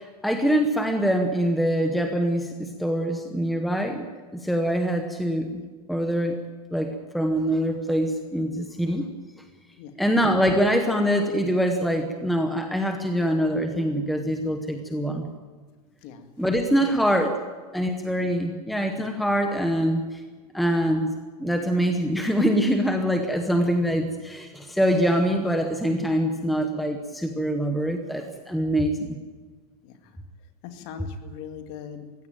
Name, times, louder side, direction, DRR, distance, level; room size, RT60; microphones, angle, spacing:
voice 1, 0.0-4.0 4.3-5.6 5.9-6.4 6.7-9.1 10.0-15.3 16.4-17.3 17.7-20.2 20.5-21.1 21.4-29.2, equal, ahead, 4 dB, 1.0 m, -24 dB
voice 2, 30.6-32.1, left 8 dB, 35° left, 7 dB, 2.2 m, -40 dB
22.5 x 16.0 x 9.2 m, 1.4 s
supercardioid pair, 170°, 21 cm